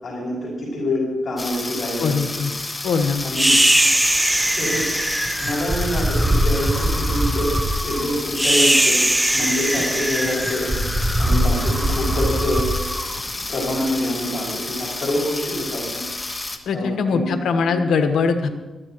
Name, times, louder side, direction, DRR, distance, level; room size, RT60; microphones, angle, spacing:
voice 1, 0.0-2.2 3.2-3.6 4.6-4.9 5.4-7.5 7.8-9.0 9.3-10.7 11.2-12.7 13.5-16.3 16.7-17.8 18.4-18.5, left 1 dB, 45° left, -5 dB, 5.8 m, -26 dB
sound 1, 1.4-16.6, left 2 dB, 20° left, 1.3 m, -31 dB
voice 2, 2.0-2.5 2.8-3.3 16.7-18.5, left 5 dB, 80° left, 7 dB, 1.2 m, -21 dB
sound 2, 3.3-13.7, right 1 dB, 10° right, 0.9 m, -21 dB
20.0 x 13.5 x 3.1 m, 1.2 s
cardioid pair, 95°, 0 cm